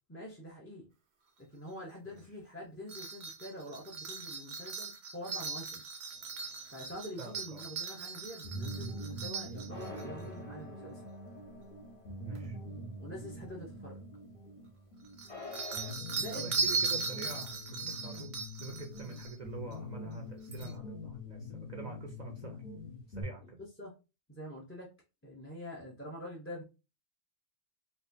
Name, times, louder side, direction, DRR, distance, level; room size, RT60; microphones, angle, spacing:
voice 1, 0.1-0.9 1.5-5.8 6.7-11.1 13.0-14.0 16.1-16.6 23.8-23.9 24.3-24.9 25.2-26.6, left 1 dB, 15° left, 0.6 m, -45 dB
sound 1, 2.9-10.0 12.3-12.4 15.0-19.4 19.7-19.8 20.5-20.7, right 5 dB, 80° right, 1.0 m, -38 dB
sound 2, 6.1-7.6 9.7-13.8 14.1-14.2 15.3-15.9, left 4 dB, 40° left, 1.6 m, -50 dB
voice 2, 7.2-7.6 9.9-10.5 12.2-12.6 16.3-22.6 23.1-23.6, right 5 dB, 50° right, 0.7 m, -46 dB
sound 3, 8.4-23.2, left 1 dB, 60° left, 1.2 m, -44 dB
4.1 x 2.5 x 2.6 m
omnidirectional pair, 1.1 m